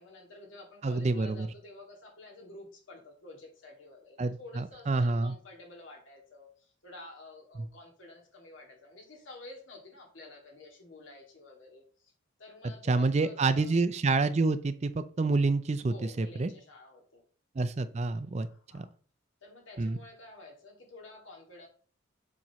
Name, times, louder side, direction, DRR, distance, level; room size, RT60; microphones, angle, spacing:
voice 1, 0.0-12.1 12.4-13.8 15.9-17.2 18.4-18.9 19.4-21.7, left 2 dB, 75° left, 0 dB, 2.2 m, -50 dB
voice 2, 0.8-1.5 4.2-5.3 12.9-16.5 17.6-18.5 18.7-18.9 19.8-20.0, right 3 dB, 35° right, 12 dB, 0.4 m, -28 dB
7.3 x 5.4 x 3.0 m, 0.43 s
head